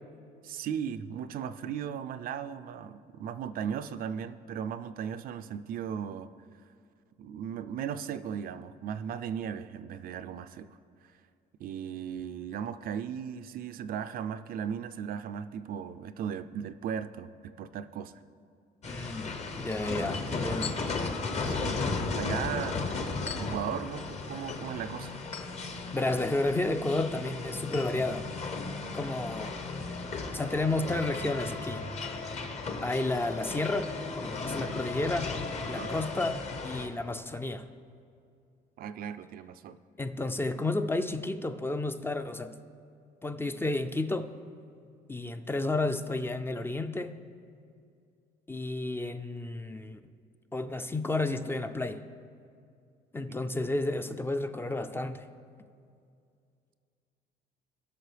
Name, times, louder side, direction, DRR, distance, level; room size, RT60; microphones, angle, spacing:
voice 1, 0.4-6.3 7.2-10.7 11.0-11.1 11.6-18.1 21.5-21.8 22.2-23.1 23.3-25.2 35.7-35.9 38.8-39.8, right 8 dB, 60° right, 11 dB, 0.4 m, -37 dB
sound 1, 18.8-36.9, left 3 dB, 40° left, 1.0 m, -35 dB
voice 2, 18.9-20.7 25.9-28.3 28.9-29.5 30.3-31.8 32.8-33.9 34.2-35.3 35.7-37.7 40.0-42.5 43.2-44.3 45.1-47.2 48.5-50.0 50.5-52.0 53.1-55.3, left 2 dB, 15° left, 8 dB, 0.4 m, -31 dB
18.0 x 6.1 x 3.4 m, 2.4 s
cardioid pair, 110°, 17 cm